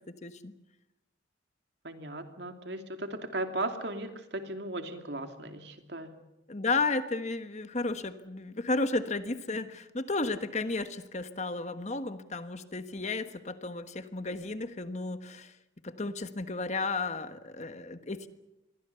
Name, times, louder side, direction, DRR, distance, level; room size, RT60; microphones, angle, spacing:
voice 1, 0.1-0.5 6.5-15.5 15.8-18.3, left 3 dB, 40° left, 10 dB, 1.3 m, -33 dB
voice 2, 1.8-6.2, right 2 dB, 65° right, 6 dB, 2.7 m, -37 dB
27.5 x 22.5 x 6.9 m, 0.91 s
head